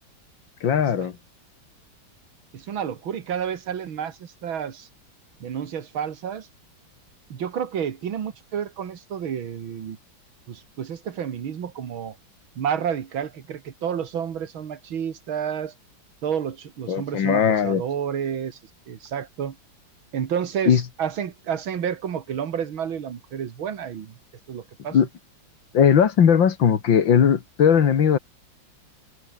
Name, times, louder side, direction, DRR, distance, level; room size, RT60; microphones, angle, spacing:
voice 1, 0.6-1.1 16.9-17.8 20.7-20.9 24.9-25.1 25.7-28.2, left 7 dB, 70° left, 2.4 m, -18 dB
voice 2, 2.5-4.9 5.4-6.5 7.3-10.0 10.5-12.2 12.6-15.7 16.2-18.6 18.9-19.6 20.1-24.2 24.5-25.0, right 8 dB, 85° right, 2.5 m, -30 dB
omnidirectional pair, 2.1 m